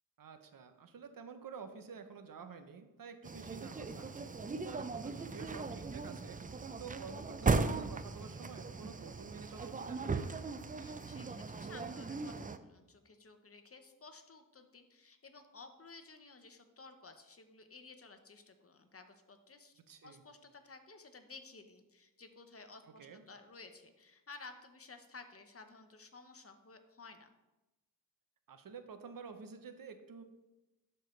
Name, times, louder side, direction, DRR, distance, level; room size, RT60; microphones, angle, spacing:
voice 1, 0.2-10.3 19.9-20.2 23.0-23.2 28.5-30.2, right 5 dB, 75° right, 9 dB, 0.8 m, -50 dB
sound 1, 3.2-12.6, right 4 dB, 25° right, 0.4 m, -38 dB
voice 2, 10.7-19.7 20.0-27.3, left 3 dB, 40° left, 7 dB, 0.9 m, -55 dB
12.0 x 4.5 x 3.2 m, 1.0 s
cardioid pair, 65°, 34 cm